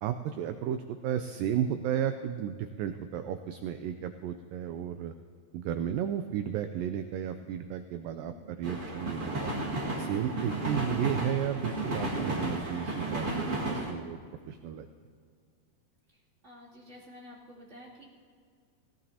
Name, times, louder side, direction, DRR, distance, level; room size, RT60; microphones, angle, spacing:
voice 1, 0.0-5.1 5.5-9.5 10.0-13.3 13.7-14.2 14.5-14.9, right 10 dB, 85° right, 8 dB, 2.0 m, -33 dB
voice 2, 8.1-8.6 16.1-18.0, left 1 dB, 20° right, -6 dB, 2.3 m, -51 dB
sound 1, 8.6-13.9, right 2 dB, 45° right, 1.0 m, -33 dB
18.0 x 18.0 x 2.8 m, 2.1 s
omnidirectional pair, 4.5 m